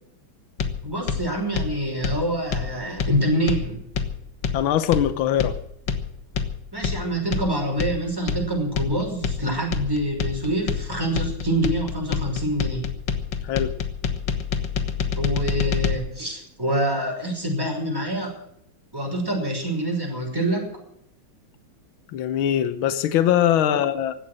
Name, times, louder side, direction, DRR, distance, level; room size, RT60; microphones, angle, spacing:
sound 1, 0.6-15.9, left 7 dB, 65° left, 2.1 m, -27 dB
voice 1, 0.8-3.8 6.7-12.8 15.1-18.4 18.9-20.7 23.7-23.8, right 1 dB, 10° right, 1 dB, 5.5 m, -26 dB
voice 2, 4.5-5.5 13.4-13.7 22.1-24.1, left 10 dB, 80° left, 12 dB, 1.7 m, -21 dB
16.5 x 12.0 x 6.3 m, 0.75 s
omnidirectional pair, 2.2 m